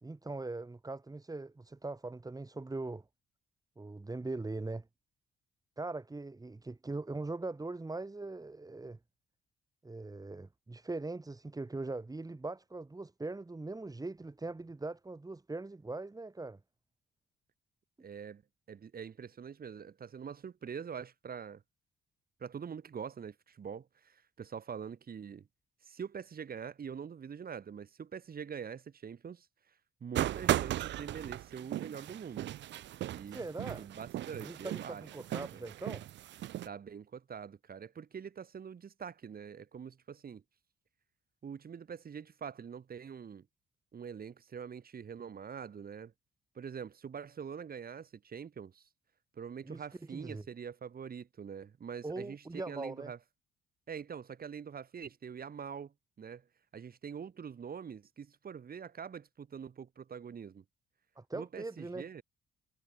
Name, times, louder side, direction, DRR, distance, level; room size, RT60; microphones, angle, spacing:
voice 1, 0.0-3.0 3.8-4.9 5.8-9.0 9.8-16.6 33.3-33.9 34.4-36.0 49.7-50.4 52.0-53.1 61.2-62.1, right 2 dB, 20° right, 4.2 m, -41 dB
voice 2, 18.0-18.4 18.7-21.6 22.4-25.5 25.8-29.7 30.0-32.5 33.1-33.4 33.8-35.0 35.4-35.6 36.6-40.4 41.4-43.5 43.9-46.1 46.5-48.9 49.3-53.2 53.9-56.5 56.7-60.6 61.3-62.2, right 7 dB, 50° right, 6.4 m, -44 dB
sound 1, 30.1-36.7, right 13 dB, 65° right, 0.6 m, -36 dB
cardioid pair, 90°, 20 cm